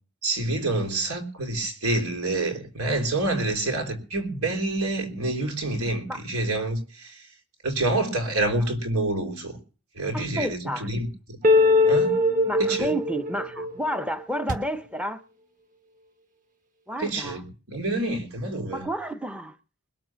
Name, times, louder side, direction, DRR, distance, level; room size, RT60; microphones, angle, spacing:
voice 1, 0.2-7.3 7.6-9.6 9.9-11.4 11.9-12.2 12.6-12.9 13.6-13.7 17.0-18.8, right 2 dB, 90° right, 3.8 m, -27 dB
voice 2, 10.1-10.9 12.5-15.2 16.9-17.4 18.7-19.6, equal, 5° right, 0.6 m, -30 dB
sound 1, 11.4-14.5, left 2 dB, 35° right, 1.4 m, -21 dB
21.0 x 7.6 x 6.2 m
head